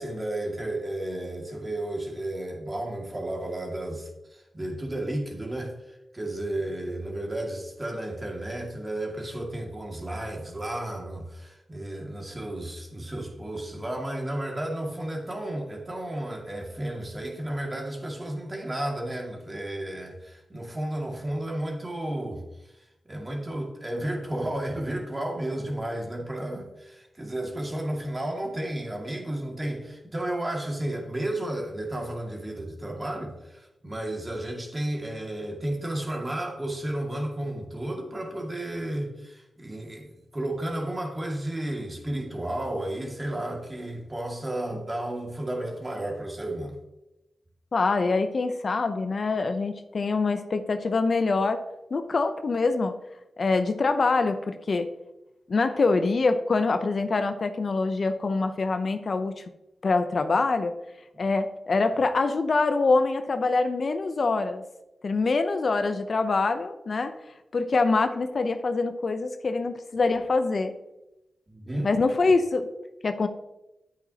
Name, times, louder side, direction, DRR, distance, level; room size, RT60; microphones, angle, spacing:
voice 1, 0.0-22.4 23.1-46.8 61.1-61.2 71.5-71.9, right 1 dB, 25° right, 1 dB, 2.2 m, -33 dB
voice 2, 47.7-51.6 51.9-52.9 53.4-54.9 55.5-59.4 59.8-60.7 61.2-64.6 65.0-67.2 67.5-70.7 71.8-72.7 73.0-73.3, left 3 dB, 55° left, 8 dB, 0.6 m, -25 dB
9.8 x 8.3 x 2.9 m, 0.94 s
cardioid pair, 60°, 0 cm